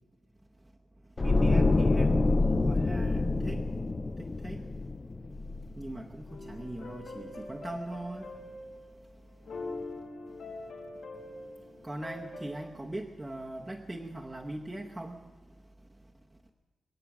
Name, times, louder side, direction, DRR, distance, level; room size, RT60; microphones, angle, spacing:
sound 1, 1.2-6.3 6.5-6.8, left 2 dB, 25° left, 0.4 m, -27 dB
voice 1, 1.2-3.6 4.2-4.6 5.8-8.3 11.8-15.2, right 1 dB, 10° right, -1 dB, 0.8 m, -40 dB
sound 2, 6.3-8.9 9.3-12.6, left 2 dB, 65° left, 3.9 m, -43 dB
23.0 x 8.4 x 7.2 m, 1.2 s
wide cardioid pair, 180°, 0 cm